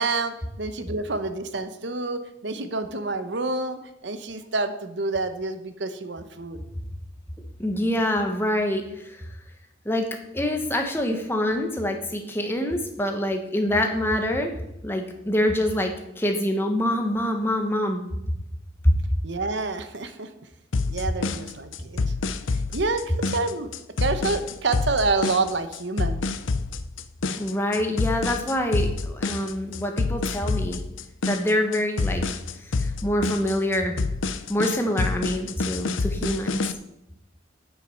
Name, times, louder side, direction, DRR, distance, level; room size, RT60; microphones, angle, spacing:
voice 1, 0.0-6.6 19.2-20.3 20.9-22.0 22.7-23.7 24.0-26.2, right 3 dB, 70° right, 9 dB, 1.0 m, -28 dB
voice 2, 7.6-9.2 9.8-10.1 10.3-14.5 14.8-18.0 18.8-18.9 27.4-30.8 31.3-32.2 32.6-34.0 34.5-36.7, left 1 dB, 10° left, 3 dB, 1.2 m, -25 dB
sound 1, 20.7-36.7, left 3 dB, 90° left, 0.6 m, -27 dB
8.4 x 7.5 x 6.4 m, 0.85 s
head